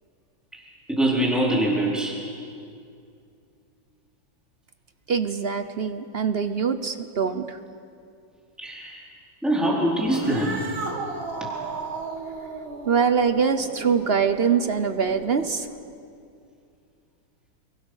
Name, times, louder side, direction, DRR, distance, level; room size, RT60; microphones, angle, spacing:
voice 1, 0.9-2.2 8.6-9.1 9.4-10.6, right 1 dB, ahead, -4 dB, 4.3 m, -23 dB
voice 2, 5.1-7.6 12.9-15.7, right 6 dB, 55° right, 10 dB, 0.6 m, -23 dB
Cat, 10.0-15.7, right 3 dB, 85° right, 3.1 m, -35 dB
28.5 x 23.5 x 6.5 m, 2.4 s
omnidirectional pair, 2.2 m